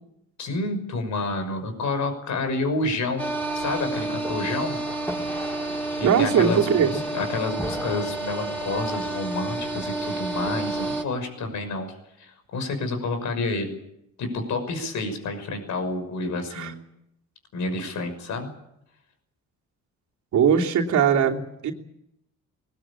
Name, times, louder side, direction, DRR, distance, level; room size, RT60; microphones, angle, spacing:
voice 1, 0.4-4.8 6.0-13.8 14.2-16.7 17.5-18.5, left 2 dB, 70° left, 7 dB, 6.1 m, -29 dB
sound 1, 3.2-11.0, right 2 dB, 5° left, 5.8 m, -30 dB
voice 2, 6.0-7.0 16.5-16.7 20.3-21.7, right 7 dB, 70° right, 0 dB, 3.1 m, -20 dB
21.0 x 19.5 x 8.7 m, 0.81 s
cardioid pair, 90°, 30 cm